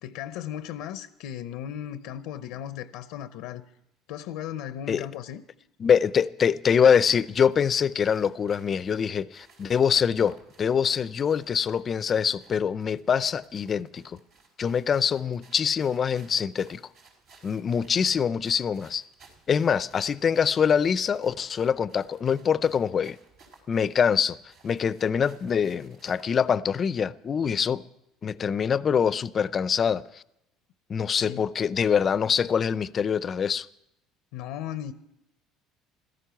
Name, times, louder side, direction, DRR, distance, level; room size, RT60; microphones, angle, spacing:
voice 1, 0.0-3.6 4.1-5.4 31.2-31.4 34.3-34.9, left 10 dB, 80° left, 0.6 m, -36 dB
voice 2, 5.8-14.2 14.6-16.8 17.4-19.0 19.5-23.2 23.7-24.4 24.6-27.8 28.2-30.2 30.9-33.7, left 7 dB, 35° left, 0.5 m, -24 dB
sound 1, 7.0-26.5, right 4 dB, 75° right, 4.9 m, -59 dB
16.0 x 13.5 x 5.8 m
supercardioid pair, 110°, 0 cm